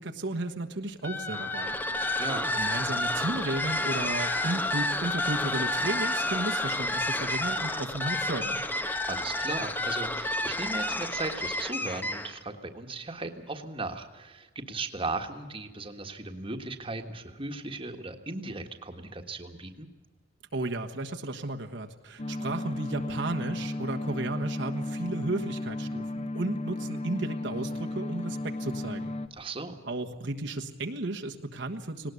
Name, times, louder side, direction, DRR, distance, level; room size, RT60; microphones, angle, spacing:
voice 1, 0.0-1.8 2.5-8.6 20.5-29.1 29.8-32.1, right 2 dB, 70° right, 3 dB, 1.4 m, -34 dB
sound 1, 1.0-12.4, left 1 dB, 10° left, 1.0 m, -30 dB
voice 2, 2.2-2.5 9.1-19.9 29.3-29.8, right 3 dB, 30° right, 5 dB, 1.6 m, -37 dB
sound 2, 22.2-29.3, left 2 dB, 35° left, 0.9 m, -34 dB
19.0 x 19.0 x 8.3 m, 1.2 s
head